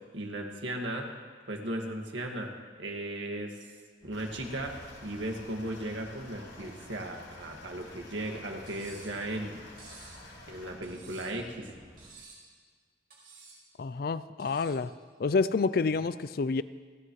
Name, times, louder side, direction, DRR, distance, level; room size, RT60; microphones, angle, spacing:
voice 1, 0.1-1.1 1.5-2.5 2.8-3.5 4.0-9.6 10.5-11.7, right 1 dB, 75° right, 1 dB, 1.9 m, -36 dB
sound 1, 4.0-12.1, equal, 25° right, 2.2 m, -54 dB
sound 2, 4.1-10.7, left 2 dB, 75° left, 4.9 m, -51 dB
Cutlery silverware, 8.7-9.2 9.8-10.2 10.8-11.4 12.0-12.5 13.1-13.6 14.4-14.8, right 3 dB, 50° right, 4.9 m, -52 dB
voice 2, 13.8-14.9 15.2-16.6, left 4 dB, 50° left, 15 dB, 0.4 m, -28 dB
30.0 x 10.0 x 3.1 m, 1.5 s
head